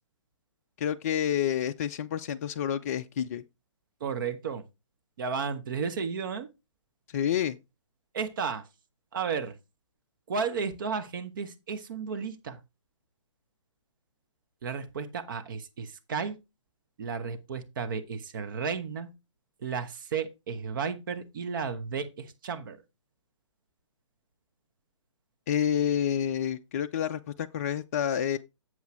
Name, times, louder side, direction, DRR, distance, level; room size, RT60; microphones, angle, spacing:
voice 1, 0.8-3.4 7.1-7.6 25.5-28.4, left 9 dB, 30° left, 0.3 m, -28 dB
voice 2, 4.0-4.6 5.2-6.5 8.1-8.7 9.1-9.6 10.3-12.6 14.6-16.4 17.0-19.1 19.6-22.8, right 5 dB, 40° right, 1.0 m, -33 dB
8.0 x 7.4 x 3.1 m
figure-of-eight pair, 130°, 16 cm